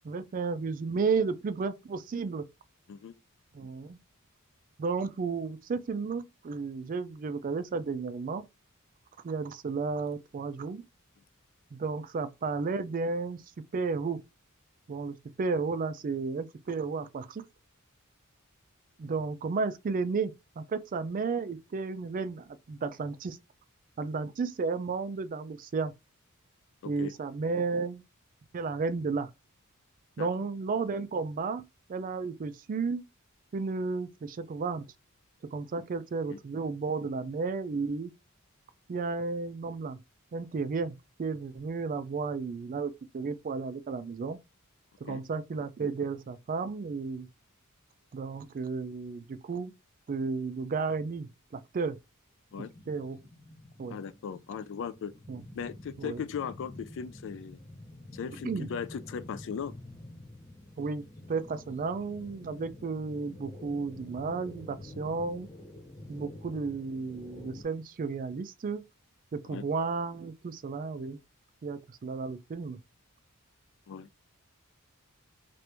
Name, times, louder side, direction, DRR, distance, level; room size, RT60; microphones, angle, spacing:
voice 1, 0.0-2.5 3.5-4.0 4.8-8.4 9.2-10.8 11.7-13.4 13.7-14.2 14.9-17.5 19.0-23.4 24.0-25.9 26.8-28.0 28.5-29.3 30.2-33.0 33.5-34.9 35.5-38.1 38.9-40.0 40.3-44.4 45.0-47.3 48.1-49.7 50.1-52.0 52.9-53.2 53.8-54.0 55.3-55.4 56.0-56.2 58.4-58.7 60.8-65.5 66.1-68.8 69.3-71.2 71.6-72.8, right 4 dB, 40° right, 0.3 m, -33 dB
sound 1, 52.5-67.6, left 1 dB, 15° left, 0.7 m, -48 dB
voice 2, 53.9-55.1 55.5-57.6 58.1-59.7 69.4-69.6 73.9-74.1, left 7 dB, 60° left, 0.3 m, -38 dB
2.9 x 2.5 x 3.3 m
head